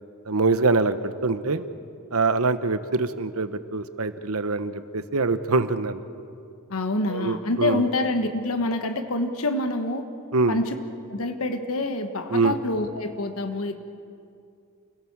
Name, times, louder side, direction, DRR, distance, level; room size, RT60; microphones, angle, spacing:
voice 1, 0.3-1.7 2.1-6.0 7.1-7.8 10.3-10.6 12.3-12.6, right 3 dB, 80° right, 11 dB, 1.0 m, -24 dB
voice 2, 6.7-10.1 10.5-10.8 11.1-13.8, left 2 dB, 75° left, 7 dB, 1.4 m, -26 dB
28.5 x 17.5 x 7.3 m, 2.4 s
head